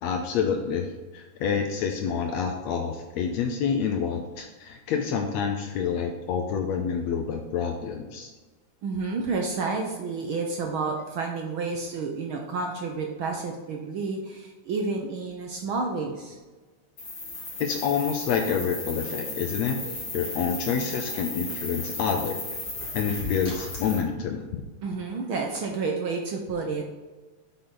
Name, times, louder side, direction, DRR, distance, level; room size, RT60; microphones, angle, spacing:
voice 1, 0.0-8.3 17.6-19.8 20.1-22.4 22.9-24.6, left 6 dB, 75° left, 4 dB, 1.8 m, -28 dB
voice 2, 8.8-16.4 24.8-26.9, right 4 dB, 75° right, 2 dB, 1.2 m, -30 dB
sound 1, 17.0-24.0, left 2 dB, 40° left, 3.5 m, -35 dB
8.3 x 6.7 x 3.9 m, 1.3 s
omnidirectional pair, 3.3 m